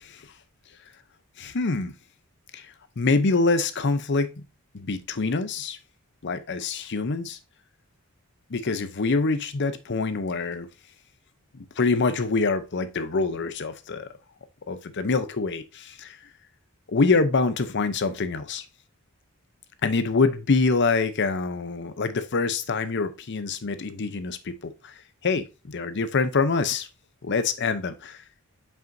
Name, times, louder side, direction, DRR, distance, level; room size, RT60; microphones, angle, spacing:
voice 1, 0.0-0.3 1.4-1.9 2.5-4.3 4.7-5.8 6.2-7.4 8.5-10.7 11.5-14.1 14.7-16.2 16.9-18.7 19.8-26.9 27.2-28.2, left 4 dB, 50° left, 12 dB, 0.7 m, -25 dB
7.5 x 5.5 x 2.6 m, 0.28 s
head